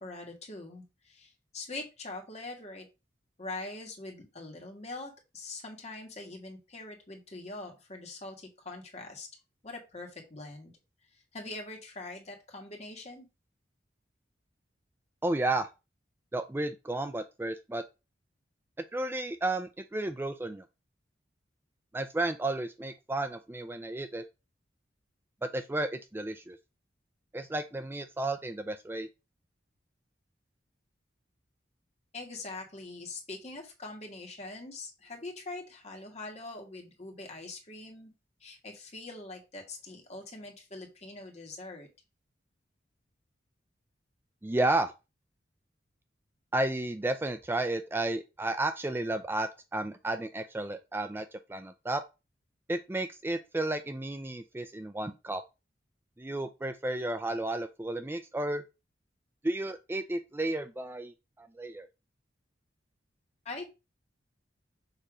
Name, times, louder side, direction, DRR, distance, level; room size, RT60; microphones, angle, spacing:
voice 1, 0.0-2.9 3.4-9.3 9.6-10.7 11.3-13.3 32.1-38.1 38.4-41.9 63.4-63.7, left 2 dB, 40° left, 2 dB, 1.7 m, -43 dB
voice 2, 15.2-15.7 16.3-17.8 18.9-20.6 21.9-24.2 25.4-26.6 27.3-29.1 44.4-44.9 46.5-52.0 52.7-55.4 56.2-58.6 59.4-61.9, right 2 dB, 10° right, 9 dB, 0.4 m, -32 dB
6.7 x 3.0 x 4.9 m, 0.27 s
head